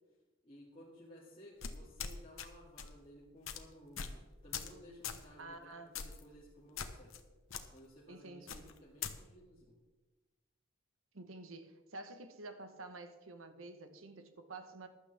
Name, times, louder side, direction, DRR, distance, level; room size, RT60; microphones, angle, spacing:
voice 1, 0.4-7.2 7.7-9.8, equal, 25° left, -6 dB, 2.2 m, -57 dB
sound 1, 1.6-2.5 2.8-3.0 3.5-3.6 4.0-4.2 4.5-4.8 5.0-5.2 6.0-6.2 6.8-7.2 7.5-7.6 8.5-9.1, left 7 dB, 80° left, 1.0 m, -42 dB
voice 2, 5.4-6.0 8.1-8.7 11.1-14.9, right 2 dB, 80° right, 8 dB, 1.1 m, -50 dB
15.0 x 11.5 x 3.4 m, 1.2 s
head